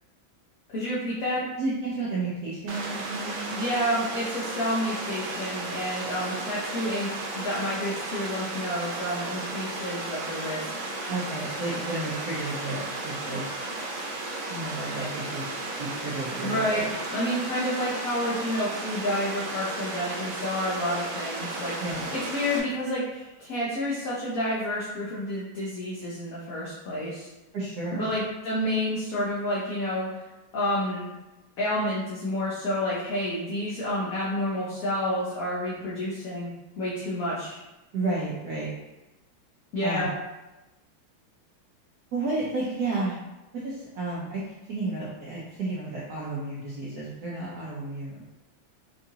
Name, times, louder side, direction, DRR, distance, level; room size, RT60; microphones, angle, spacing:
voice 1, 0.7-1.5 3.5-10.6 16.4-16.8 17.1-21.7 22.1-27.3 27.9-30.1 30.5-31.1 31.6-36.5 36.8-37.6 39.7-40.1, left 1 dB, 60° left, -7 dB, 0.9 m, -29 dB
voice 2, 1.6-3.5 11.1-13.4 14.5-15.5 15.8-16.9 21.8-22.1 27.5-28.1 37.9-38.7 39.8-40.1 42.1-43.2 43.6-44.4 44.7-48.2, right 2 dB, 65° right, -7 dB, 1.0 m, -32 dB
Water, 2.7-22.6, right 2 dB, 85° right, 1.5 m, -34 dB
4.6 x 2.5 x 2.7 m, 1.0 s
omnidirectional pair, 2.1 m